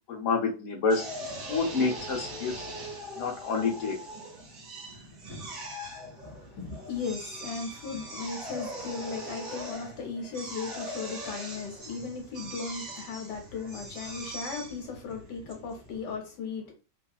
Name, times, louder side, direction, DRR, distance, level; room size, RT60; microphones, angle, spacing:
voice 1, 0.1-1.0 1.5-2.7 3.2-4.0, left 4 dB, 55° left, 1.0 m, -28 dB
Drill, 0.9-16.2, right 1 dB, 55° right, 1.3 m, -41 dB
voice 2, 6.2-16.7, left 5 dB, 70° left, 1.3 m, -37 dB
3.0 x 2.6 x 2.3 m
omnidirectional pair, 1.9 m